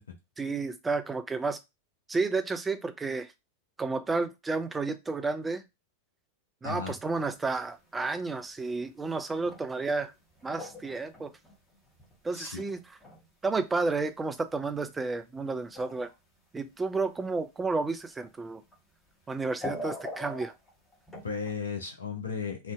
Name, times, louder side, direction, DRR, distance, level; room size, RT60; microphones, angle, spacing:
voice 1, 0.4-1.6 2.1-3.3 3.8-5.6 6.6-10.1 10.4-11.3 12.2-12.8 13.4-16.1 16.5-18.6 19.3-20.5, right 3 dB, 15° right, 0.3 m, -31 dB
voice 2, 6.6-6.9 12.3-12.6 21.2-22.7, left 5 dB, 75° left, 0.4 m, -35 dB
sound 1, 7.1-7.6 7.9-8.0 9.0-9.1 9.4-9.7 10.0-12.3 12.5-13.3 13.5-13.6 14.6-14.7 15.7-16.1 18.1-18.3 18.7-18.8 19.4-21.5, left 1 dB, 10° left, 0.8 m, -42 dB
2.5 x 2.1 x 2.3 m
figure-of-eight pair, 90°, 0 cm